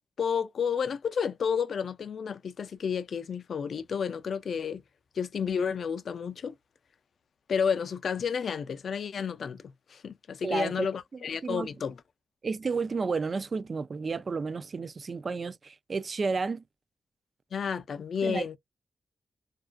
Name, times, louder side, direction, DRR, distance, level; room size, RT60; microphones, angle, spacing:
voice 1, 0.2-4.8 5.1-6.5 7.5-9.6 9.9-12.0 17.5-18.6, left 6 dB, 70° left, 0.3 m, -31 dB
voice 2, 10.4-10.9 11.4-11.7 12.4-16.6 18.2-18.5, right 4 dB, 45° right, 0.3 m, -31 dB
2.4 x 2.3 x 2.3 m
cardioid pair, 80°, 0 cm